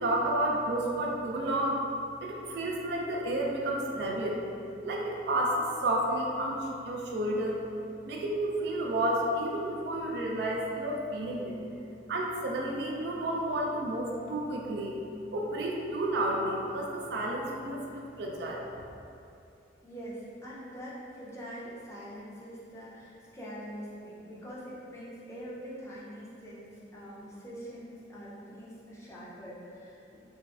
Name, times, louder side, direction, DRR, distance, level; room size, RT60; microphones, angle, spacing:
voice 1, 0.0-4.4 4.8-7.5 8.0-11.6 12.1-15.0 15.3-18.7, right 1 dB, 65° right, -1 dB, 0.3 m, -31 dB
voice 2, 19.8-30.2, equal, 15° left, -7 dB, 0.4 m, -44 dB
3.3 x 2.0 x 2.3 m, 2.6 s
head